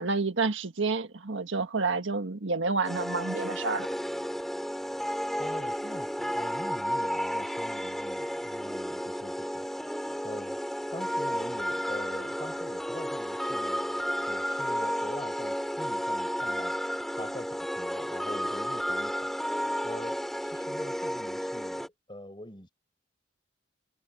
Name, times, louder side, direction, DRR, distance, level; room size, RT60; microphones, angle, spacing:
voice 1, 0.0-3.9, right 4 dB, 75° right, 1.6 m, -29 dB
sound 1, 2.8-21.9, equal, ahead, 7.1 m, -32 dB
voice 2, 5.4-9.7 10.2-10.6 10.9-13.8 14.3-16.8 17.1-19.3 19.8-22.7, left 1 dB, 25° left, 5.8 m, -44 dB
head